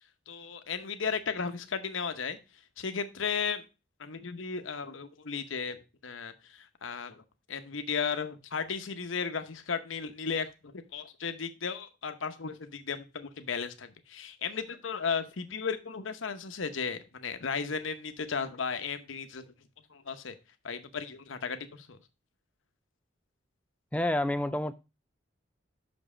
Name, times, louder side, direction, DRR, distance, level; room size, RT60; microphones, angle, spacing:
voice 1, 0.3-2.4 2.8-3.6 4.0-7.2 7.5-19.5 19.9-20.3 20.6-22.0, left 5 dB, 85° left, 0.8 m, -35 dB
voice 2, 23.9-24.7, left 1 dB, 5° left, 0.3 m, -28 dB
6.0 x 5.3 x 4.8 m
head